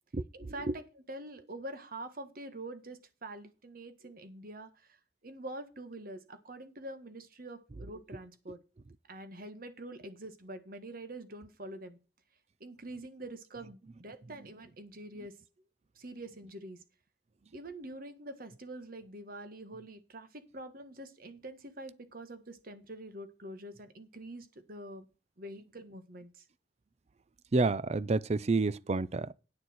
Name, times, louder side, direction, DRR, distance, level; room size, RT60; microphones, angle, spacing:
voice 1, 0.3-8.6 9.1-12.0 12.6-15.4 15.9-16.8 17.5-25.1 25.4-26.4, right 1 dB, 55° right, 1.6 m, -45 dB
voice 2, 27.5-29.3, right 3 dB, 40° right, 0.5 m, -29 dB
9.5 x 6.7 x 6.1 m
head